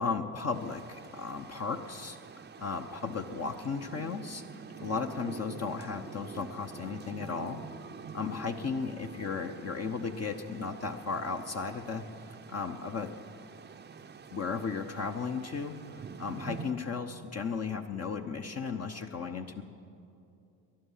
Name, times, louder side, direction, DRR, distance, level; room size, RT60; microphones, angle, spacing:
voice 1, 0.0-2.2 2.6-4.4 4.8-7.6 8.1-12.0 12.5-13.1 14.3-15.7 16.2-19.6, left 5 dB, 35° left, 4 dB, 0.9 m, -35 dB
sound 1, 0.5-16.7, right 6 dB, 25° right, 0.7 m, -47 dB
20.0 x 11.5 x 5.7 m, 2.6 s
supercardioid pair, 70°, 41 cm